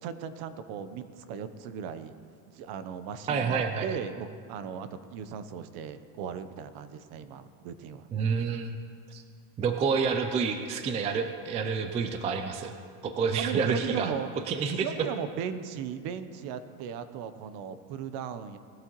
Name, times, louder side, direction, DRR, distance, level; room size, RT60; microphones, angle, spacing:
voice 1, 0.0-2.1 2.5-8.1 13.4-14.3 14.8-18.6, right 7 dB, 50° right, 11 dB, 0.9 m, -37 dB
voice 2, 3.3-3.9 8.1-8.7 9.1-9.2 9.6-12.7 13.0-14.1 14.5-14.9, right 5 dB, 15° right, 7 dB, 0.3 m, -28 dB
19.5 x 12.0 x 3.1 m, 2.1 s
supercardioid pair, 130°, 50 cm